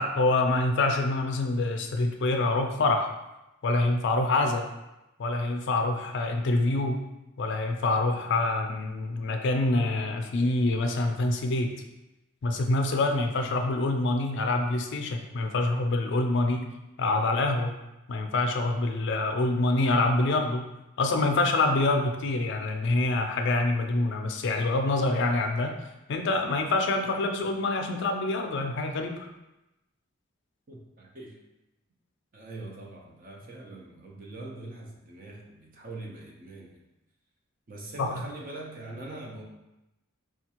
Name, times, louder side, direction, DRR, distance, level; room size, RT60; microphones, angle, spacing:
voice 1, 0.0-3.1 3.6-4.7 5.2-7.1 7.4-11.7 12.4-16.7 17.0-17.7 18.1-20.6 21.0-25.8 26.1-29.3 38.0-38.1, left 2 dB, 55° left, 4 dB, 0.4 m, -26 dB
voice 2, 30.7-31.4 32.3-36.8 37.7-39.4, right 2 dB, 40° right, -2 dB, 0.6 m, -42 dB
4.3 x 2.3 x 2.9 m, 0.96 s
head